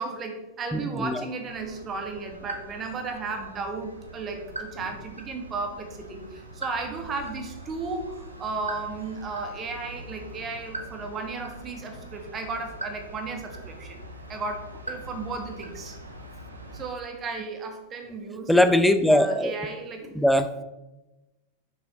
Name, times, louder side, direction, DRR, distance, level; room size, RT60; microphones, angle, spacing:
voice 1, 0.0-14.0 14.3-16.0 16.7-18.5 19.1-20.1, right 3 dB, 25° right, 4 dB, 1.3 m, -34 dB
voice 2, 0.7-1.2 18.5-19.5 20.1-20.5, left 1 dB, ahead, 9 dB, 0.5 m, -20 dB
sound 1, 1.4-16.9, right 1 dB, 85° right, 1.0 m, -42 dB
6.3 x 5.6 x 4.1 m, 1.0 s
figure-of-eight pair, 90°, 0 cm